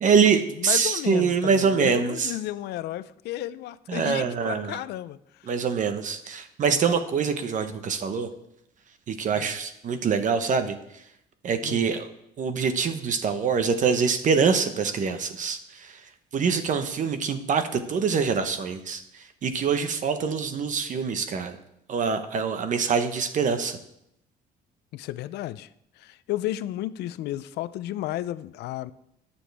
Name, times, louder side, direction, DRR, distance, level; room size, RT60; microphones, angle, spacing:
voice 1, 0.0-2.3 3.9-4.8 5.5-8.3 9.1-10.7 11.4-12.1 12.4-15.9 16.3-19.0 19.4-21.6 21.9-23.8, right 6 dB, 50° right, 1.1 m, -24 dB
voice 2, 0.6-5.5 9.3-9.5 11.6-11.9 24.9-25.7 26.0-28.9, left 14 dB, 80° left, 0.5 m, -33 dB
20.5 x 7.1 x 3.5 m
cardioid pair, 110°, 17 cm